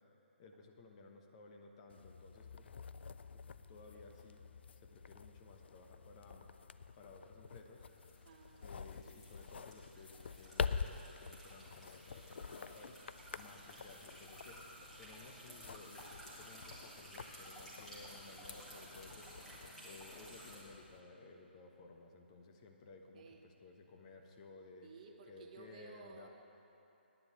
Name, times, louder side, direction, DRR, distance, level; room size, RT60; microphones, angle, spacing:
voice 1, 0.4-2.7 3.3-4.4 4.8-6.5 7.0-7.8 8.6-24.9 25.3-26.3, left 3 dB, 35° left, 3 dB, 1.0 m, -57 dB
sound 1, 1.9-21.0, left 6 dB, 65° left, 0.4 m, -47 dB
sound 2, 7.8-20.6, right 1 dB, 5° left, 1.8 m, -55 dB
voice 2, 8.2-8.7 23.1-23.4 24.8-26.3, right 4 dB, 40° right, 3 dB, 1.0 m, -56 dB
9.8 x 7.1 x 8.1 m, 2.9 s
hypercardioid pair, 150°, 6 cm